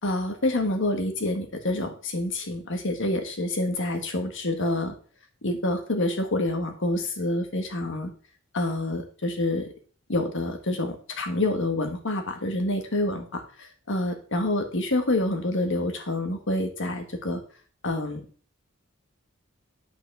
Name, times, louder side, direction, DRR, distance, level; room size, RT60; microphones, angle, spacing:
voice 1, 0.0-4.9 5.4-8.1 8.5-9.7 10.1-17.4 17.8-18.2, left 1 dB, 60° left, 6 dB, 1.6 m, -27 dB
9.7 x 5.7 x 6.0 m, 0.41 s
head